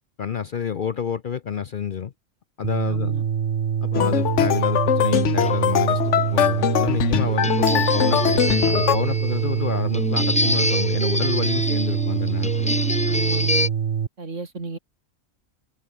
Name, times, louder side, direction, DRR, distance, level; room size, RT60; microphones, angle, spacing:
voice 1, 0.2-2.1 2.6-3.1 3.8-12.8, left 7 dB, 50° left, 0.7 m, -29 dB
sound 1, 2.6-14.1, right 7 dB, 50° right, 1.0 m, -25 dB
voice 2, 2.9-3.2 7.4-7.6 13.1-13.7 14.2-14.8, right 3 dB, 70° right, 3.3 m, -33 dB
sound 2, 3.9-9.0, left 10 dB, 70° left, 1.1 m, -22 dB
sound 3, 5.4-13.7, left 1 dB, 10° left, 0.3 m, -26 dB
omnidirectional pair, 1.3 m